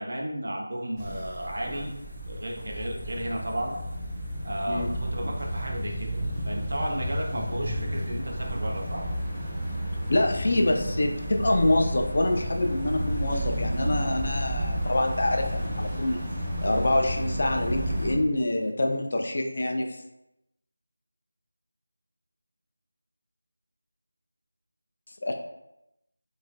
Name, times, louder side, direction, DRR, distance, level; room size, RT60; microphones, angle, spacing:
voice 1, 0.0-1.9 2.2-3.8 4.4-6.2 6.5-9.0, right 1 dB, 55° right, 0 dB, 0.6 m, -33 dB
sound 1, 1.0-18.1, equal, 10° right, 0.6 m, -32 dB
voice 2, 10.1-16.2 16.6-19.9 25.2-25.3, left 1 dB, 50° left, 3 dB, 0.4 m, -26 dB
4.2 x 2.5 x 2.2 m, 0.89 s
figure-of-eight pair, 165°, 0 cm